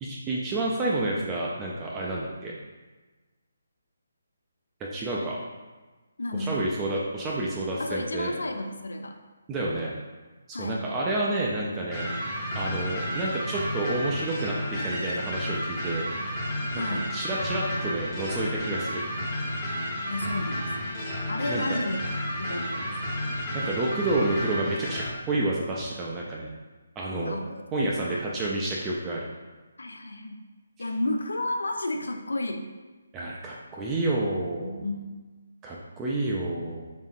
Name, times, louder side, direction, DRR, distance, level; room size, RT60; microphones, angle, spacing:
voice 1, 0.0-2.5 4.8-5.4 6.3-8.3 9.5-9.9 10.5-12.1 12.6-16.1 16.7-19.0 21.5-21.8 23.5-26.5 27.0-27.4 27.7-29.3 33.1-34.8 35.6-36.9, right 2 dB, 15° right, -4 dB, 0.3 m, -29 dB
voice 2, 6.2-6.7 7.8-9.2 10.5-10.9 16.7-17.2 20.1-21.0 21.3-22.0 22.4-23.0 27.2-28.2 29.8-30.4 30.8-32.7 34.6-35.1, left 1 dB, 70° left, 5 dB, 0.4 m, -32 dB
sound 1, 11.9-25.1, equal, 15° left, 0.7 m, -32 dB
3.6 x 3.5 x 2.5 m, 1.2 s
figure-of-eight pair, 145°, 0 cm